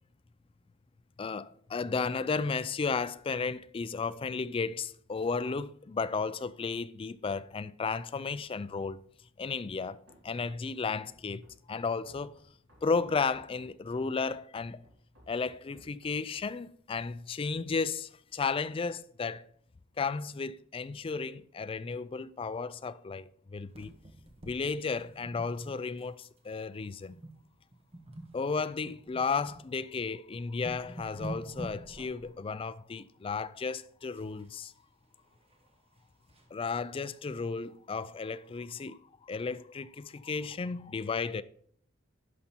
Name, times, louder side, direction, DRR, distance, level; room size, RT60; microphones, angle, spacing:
voice 1, 1.2-9.0 9.4-10.0 10.2-12.4 12.8-14.8 15.3-19.5 20.0-23.9 24.4-27.2 28.3-34.7 36.5-41.4, left 4 dB, 25° left, 0.3 m, -34 dB
Run, 10.1-16.7, equal, 75° right, 4.0 m, -61 dB
sound 1, 23.7-26.1 26.4-26.6 27.1-27.4 27.7-29.6 30.1-30.2 30.4-32.3 34.2-34.7 35.1-36.5 37.0-37.1 37.4-37.5 37.9-38.0, right 1 dB, 30° right, 1.4 m, -46 dB
11.5 x 5.5 x 4.4 m
head